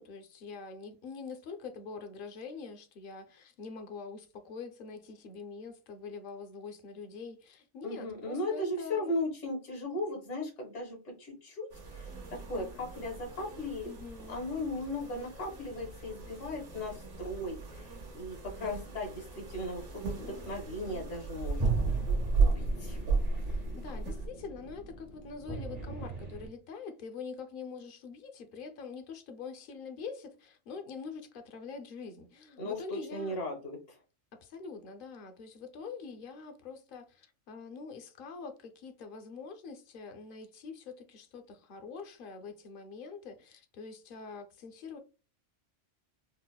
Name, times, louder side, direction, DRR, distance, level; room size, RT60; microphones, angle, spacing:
voice 1, 0.0-9.1 13.8-14.4 23.4-33.4 34.3-45.0, left 5 dB, 60° left, 0.6 m, -44 dB
voice 2, 7.8-13.9 14.3-21.7 22.4-23.0 32.6-34.0, left 1 dB, 85° left, 1.2 m, -37 dB
sound 1, 11.7-24.3, right 4 dB, 80° right, 1.2 m, -35 dB
sound 2, 20.2-26.5, right 3 dB, 40° right, 0.7 m, -37 dB
3.9 x 2.0 x 2.2 m
omnidirectional pair, 1.2 m